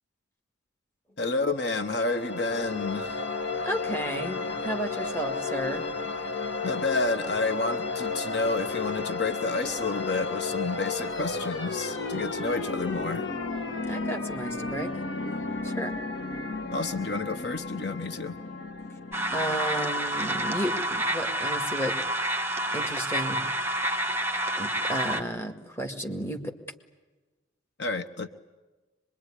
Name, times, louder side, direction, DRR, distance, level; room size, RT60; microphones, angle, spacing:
voice 1, 1.2-3.2 6.6-13.2 16.7-18.4 27.8-28.3, left 3 dB, 60° left, 8 dB, 1.2 m, -30 dB
sound 1, 1.6-20.2, left 3 dB, 80° left, 1.9 m, -33 dB
voice 2, 3.6-5.9 13.9-14.9 15.6-15.9 19.3-21.9 22.7-23.5 24.6-26.5, equal, 15° left, 4 dB, 2.0 m, -32 dB
sound 2, 19.1-25.2, right 1 dB, 10° right, 1.5 m, -29 dB
25.0 x 22.5 x 9.9 m, 1.2 s
head